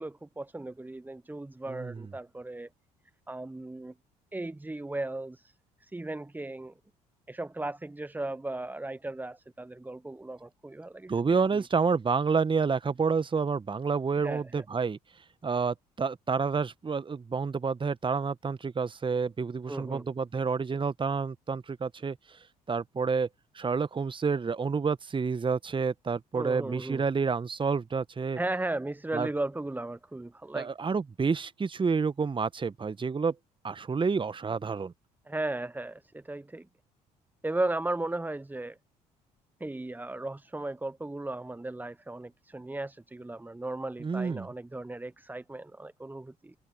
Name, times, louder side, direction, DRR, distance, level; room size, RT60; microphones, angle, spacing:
voice 1, 0.0-2.7 3.3-3.9 4.3-5.5 5.8-6.7 7.3-11.6 14.2-14.6 19.7-20.1 26.3-27.0 28.3-30.7 35.3-36.7 37.4-38.8 39.6-46.5, right 2 dB, 10° right, 1.0 m, -36 dB
voice 2, 1.7-2.1 11.1-15.0 15.4-22.2 22.7-23.3 23.5-28.4 29.1-29.3 30.5-33.3 33.6-34.9 44.0-44.5, right 5 dB, 25° right, 1.5 m, -29 dB
figure-of-eight pair, 50°, 20 cm